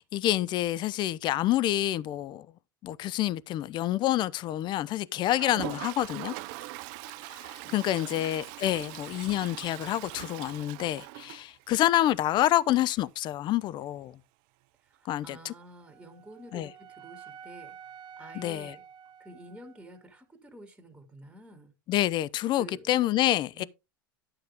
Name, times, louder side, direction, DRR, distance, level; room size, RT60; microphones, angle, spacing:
voice 1, 0.0-2.5 2.8-6.3 7.3-14.2 15.1-15.5 16.5-16.7 18.3-18.7 21.9-23.6, left 14 dB, 40° left, 0.7 m, -28 dB
Toilet flush, 5.3-12.0 12.3-12.4 12.6-12.7 13.0-13.1 15.6-15.7 17.0-17.1, right 18 dB, 55° right, 0.6 m, -42 dB
voice 2, 7.6-8.3 14.8-17.8 18.2-18.8 19.2-21.7 22.6-22.9 23.5-23.7, right 1 dB, 5° right, 2.9 m, -49 dB
Wind instrument woodwind instrument, 15.8-20.1, right 7 dB, 35° right, 1.3 m, -49 dB
12.0 x 6.7 x 3.6 m
hypercardioid pair, 100°, 12 cm